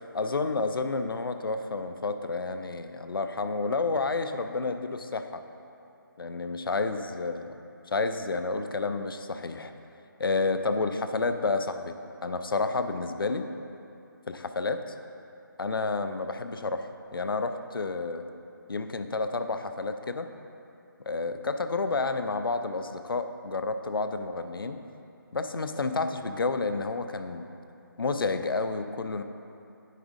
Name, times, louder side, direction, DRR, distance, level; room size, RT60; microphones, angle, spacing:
voice 1, 0.1-5.4 6.2-7.4 7.9-9.7 10.2-11.9 12.2-13.5 14.3-14.8 15.6-18.2 18.7-20.3 21.0-24.8 25.3-27.5 28.0-29.2, left 3 dB, 80° left, 8 dB, 0.5 m, -30 dB
9.2 x 3.6 x 5.1 m, 2.7 s
figure-of-eight pair, 170°, 12 cm